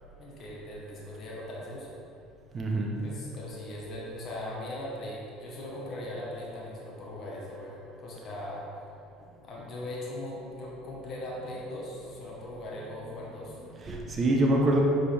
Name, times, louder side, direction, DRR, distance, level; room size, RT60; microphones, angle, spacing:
voice 1, 0.2-1.9 3.0-8.7 9.4-13.6, left 1 dB, 40° left, -4 dB, 1.3 m, -39 dB
voice 2, 2.5-3.1 13.0-13.3 13.7-14.8, right 1 dB, 30° right, 0 dB, 1.0 m, -26 dB
6.5 x 4.9 x 3.5 m, 2.6 s
supercardioid pair, 115°, 0 cm